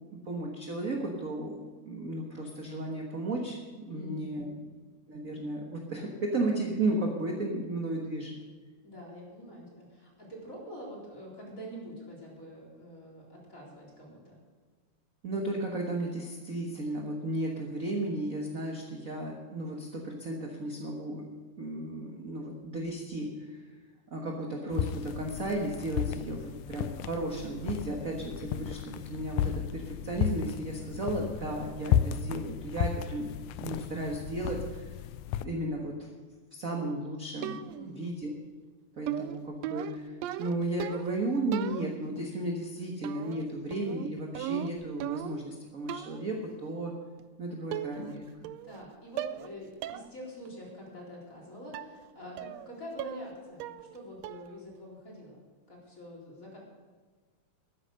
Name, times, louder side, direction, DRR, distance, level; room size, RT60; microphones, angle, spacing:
voice 1, 0.1-4.5 5.1-8.3 15.2-21.2 21.6-23.6 24.1-33.3 33.6-34.9 35.4-36.1 36.5-38.3 39.0-40.1 40.4-46.9 47.4-48.5, right 2 dB, 45° right, 0 dB, 1.1 m, -34 dB
voice 2, 3.9-4.6 8.8-14.3 37.7-38.1 48.6-56.6, equal, 25° left, -4 dB, 4.2 m, -46 dB
sound 1, 24.7-35.5, left 10 dB, 85° left, 2.0 m, -34 dB
sound 2, 37.4-38.0 39.1-41.2 41.5-42.2 43.0-43.4 43.7-45.5 45.9-46.3 47.2-47.3 47.7-48.2 48.4-48.8 49.2-49.5 49.8-50.1 50.5-50.6 51.7-52.0 52.4-52.7 53.0-53.3 53.6-54.0 54.2-54.6, right 12 dB, 85° right, 1.5 m, -37 dB
13.0 x 10.0 x 6.6 m, 1.4 s
omnidirectional pair, 3.5 m